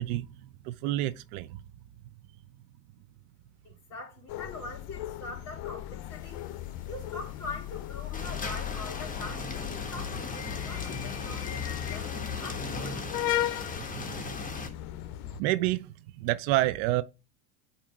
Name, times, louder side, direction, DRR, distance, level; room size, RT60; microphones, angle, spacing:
voice 1, 0.0-1.6 13.9-14.1 15.4-17.0, right 16 dB, 65° right, 0.6 m, -29 dB
voice 2, 3.6-6.4 6.9-13.0, left 2 dB, 35° left, 3.4 m, -43 dB
sound 1, 4.3-15.4, left 13 dB, 55° left, 0.7 m, -36 dB
thunderstorm and rain, 6.1-6.2 6.4-6.7 7.0-7.1 7.5-7.8 8.1-14.7, left 3 dB, 20° left, 1.3 m, -38 dB
8.6 x 2.9 x 4.6 m
hypercardioid pair, 85°, 45 cm